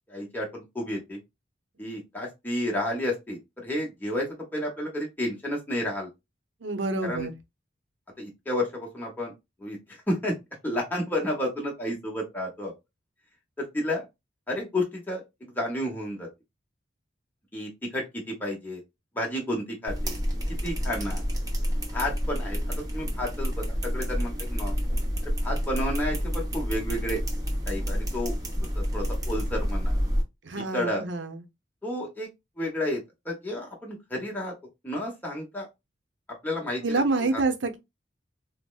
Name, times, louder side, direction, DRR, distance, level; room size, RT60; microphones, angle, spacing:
voice 1, 0.1-1.2 1.8-4.3 4.5-6.1 7.0-7.3 8.2-9.3 9.6-10.4 10.6-12.7 13.6-14.1 14.5-16.3 17.5-18.8 19.1-20.2 20.6-21.2 21.9-22.6 22.9-24.8 25.2-27.2 27.7-28.3 28.7-30.0 30.7-31.0 31.8-32.3 32.6-34.5 34.8-35.7 36.4-36.8 37.2-37.4, left 1 dB, 10° left, 0.8 m, -31 dB
voice 2, 6.6-7.3 30.4-31.4 36.8-37.8, right 3 dB, 80° right, 0.6 m, -27 dB
sound 1, 19.9-30.2, equal, 20° right, 0.7 m, -29 dB
4.1 x 2.0 x 2.3 m
head